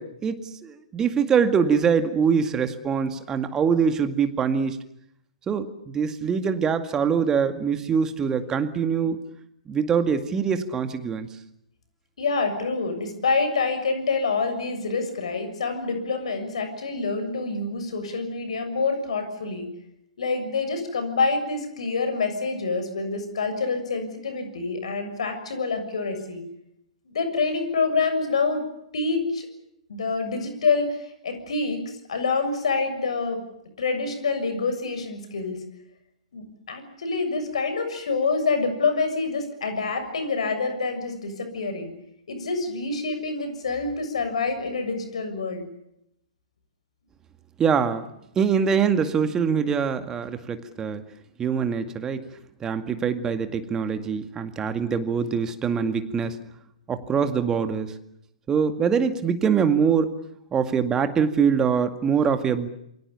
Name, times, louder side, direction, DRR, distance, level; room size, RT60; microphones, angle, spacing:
voice 1, 0.0-4.8 5.5-9.2 9.7-11.3 47.6-48.1 48.4-51.0 51.4-52.2 52.6-56.4 56.9-57.9 58.5-60.1 60.5-62.7, right 6 dB, 15° right, 9 dB, 2.1 m, -23 dB
voice 2, 12.2-19.7 20.2-26.4 27.1-28.6 28.9-29.5 29.9-31.8 32.1-33.4 33.8-35.6 36.3-41.9 42.3-45.7, left 4 dB, 60° left, 9 dB, 7.1 m, -27 dB
28.0 x 24.0 x 7.1 m, 0.78 s
figure-of-eight pair, 115°, 4 cm